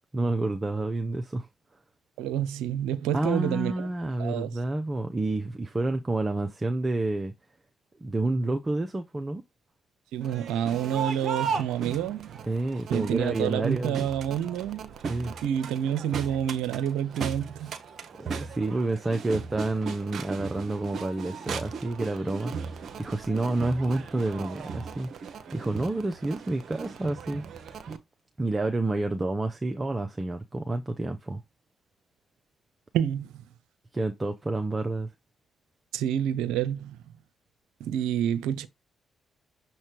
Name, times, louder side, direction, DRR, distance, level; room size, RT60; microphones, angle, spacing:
voice 1, 0.1-1.5 3.1-7.3 8.0-9.4 12.5-14.1 15.1-15.3 18.2-27.4 28.4-31.4 33.9-35.1, right 2 dB, 30° right, 0.8 m, -29 dB
voice 2, 2.2-3.9 4.2-4.5 10.1-12.4 12.9-14.9 15.3-17.7 32.9-33.4 35.9-37.0 37.8-38.7, right 10 dB, 85° right, 0.6 m, -28 dB
Crowd, 10.2-28.0, right 5 dB, 60° right, 0.9 m, -37 dB
6.7 x 3.1 x 4.5 m
hypercardioid pair, 50°, 0 cm